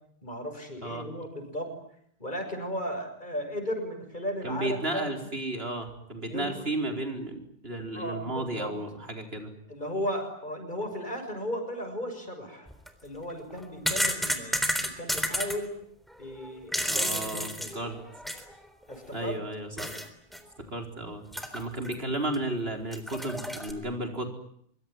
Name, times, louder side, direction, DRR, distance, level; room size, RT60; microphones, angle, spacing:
voice 1, 0.2-1.7 2.2-5.1 6.3-6.6 7.9-8.7 9.7-12.7 13.0-15.7 16.2-17.7 18.9-19.4, equal, 50° left, 6 dB, 6.8 m, -35 dB
voice 2, 4.4-9.5 16.9-18.0 19.1-19.9 20.7-21.2 21.5-24.3, right 1 dB, 75° right, 5 dB, 4.9 m, -33 dB
sound 1, 12.7-12.9 13.5-15.6 16.4-18.5 18.9-19.0 19.8-20.1 20.3-20.4 21.3-21.9 22.3-22.4 22.9-23.7, equal, ahead, 3.7 m, -31 dB
25.5 x 24.0 x 9.4 m, 0.68 s
omnidirectional pair, 1.0 m